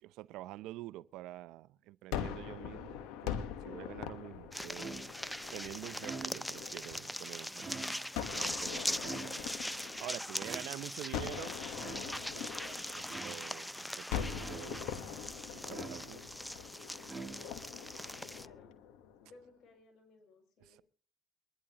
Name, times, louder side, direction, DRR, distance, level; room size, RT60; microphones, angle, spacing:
voice 1, 0.0-5.1 5.5-7.7 8.3-9.4 10.0-11.5 12.3-15.0 15.5-16.3 20.6-20.8, right 16 dB, 80° right, 0.5 m, -47 dB
Gunshot gunfire, 2.1-7.2 8.1-10.6 11.1-13.6 14.1-19.3, left 9 dB, 85° left, 1.2 m, -43 dB
sound 1, 4.5-18.5, left 1 dB, 5° left, 0.5 m, -41 dB
sound 2, 4.8-5.3 5.9-6.7 7.5-8.3 9.0-9.7 10.4-11.1 11.7-12.3 13.1-13.7 14.4-15.0 15.7-16.4 17.0-17.8, right 4 dB, 25° right, 2.8 m, -47 dB
voice 2, 18.3-18.8 19.2-20.8, left 3 dB, 60° left, 6.3 m, -60 dB
23.5 x 11.0 x 3.0 m
supercardioid pair, 80°, 0 cm